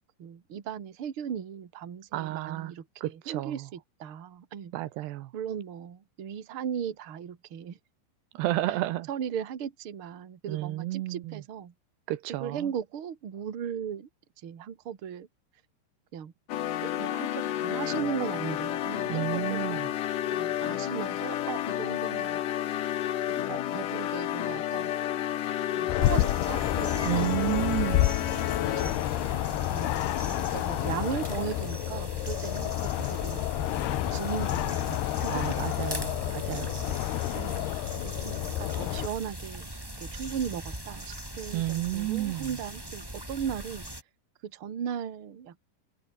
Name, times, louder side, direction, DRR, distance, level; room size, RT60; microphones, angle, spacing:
voice 1, 0.2-4.7 5.3-7.8 8.7-8.8 9.1-11.7 12.4-14.1 14.4-15.3 16.1-16.3 16.8-19.8 20.3-22.4 23.3-24.9 25.8-28.0 28.8-29.1 29.7-30.0 30.3-33.4 34.1-35.6 37.3-37.7 38.0-39.7 40.0-43.9 44.4-45.6, right 8 dB, 40° right, 2.3 m, -37 dB
voice 2, 2.1-2.7 3.0-3.6 4.7-5.3 8.3-9.1 10.5-11.4 12.1-12.7 19.1-19.9 27.0-28.1 35.3-36.8 41.5-42.5, right 16 dB, 80° right, 3.1 m, -31 dB
sound 1, 16.5-29.2, left 12 dB, 60° left, 2.5 m, -31 dB
sound 2, 25.9-39.1, left 16 dB, 80° left, 3.0 m, -30 dB
sound 3, 26.0-44.0, right 1 dB, 5° right, 3.7 m, -40 dB
omnidirectional pair, 4.9 m